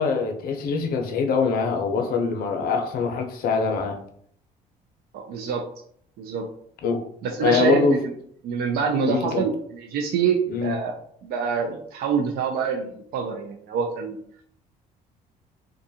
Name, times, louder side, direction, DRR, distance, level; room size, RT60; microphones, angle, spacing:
voice 1, 0.0-4.0 6.8-7.0 7.4-8.0 9.0-9.4 10.5-10.7, left 5 dB, 60° left, 5 dB, 0.6 m, -23 dB
voice 2, 5.1-5.7 6.2-6.5 7.2-8.1 8.4-14.2, right 6 dB, 65° right, 2 dB, 0.4 m, -26 dB
2.5 x 2.3 x 2.7 m, 0.63 s
cardioid pair, 110°, 17 cm